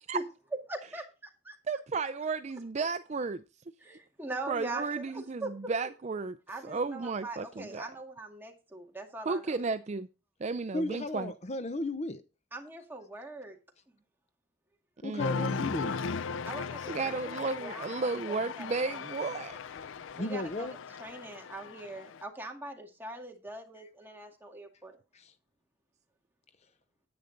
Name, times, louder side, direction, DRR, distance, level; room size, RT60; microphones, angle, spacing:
voice 1, 0.7-1.6 3.8-5.1 5.4-5.7 6.5-9.6 12.5-13.6 13.9-14.0 16.5-19.0 20.1-25.0, right 2 dB, 10° right, 2.1 m, -42 dB
voice 2, 1.7-3.4 4.5-6.4 6.6-7.8 9.3-10.1 10.4-11.3 15.0-15.7 16.9-19.8, right 4 dB, 35° right, 0.4 m, -33 dB
voice 3, 10.7-12.2 15.0-16.0 20.2-20.8 25.1-25.3, left 2 dB, 35° left, 0.7 m, -35 dB
Cheering, 15.2-22.2, left 5 dB, 75° left, 0.4 m, -37 dB
10.5 x 9.0 x 3.9 m
head